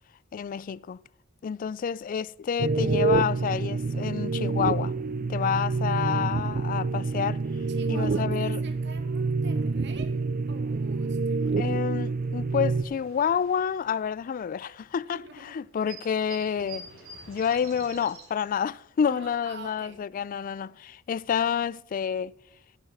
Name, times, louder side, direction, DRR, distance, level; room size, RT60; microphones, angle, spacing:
voice 1, 0.3-1.0 1.4-4.9 5.3-7.4 7.9-8.6 11.6-16.8 17.3-22.3, left 7 dB, 40° left, 0.3 m, -29 dB
sound 1, 2.6-12.8, right 3 dB, 45° right, 0.4 m, -27 dB
voice 2, 7.7-10.2 10.5-11.6 15.1-15.6 19.0-20.0, right 3 dB, 60° right, 1.8 m, -46 dB
sound 2, 12.1-12.2 12.4-14.9 15.3-15.4 15.6-18.4, right 4 dB, 85° right, 4.1 m, -47 dB
10.5 x 7.2 x 6.8 m
head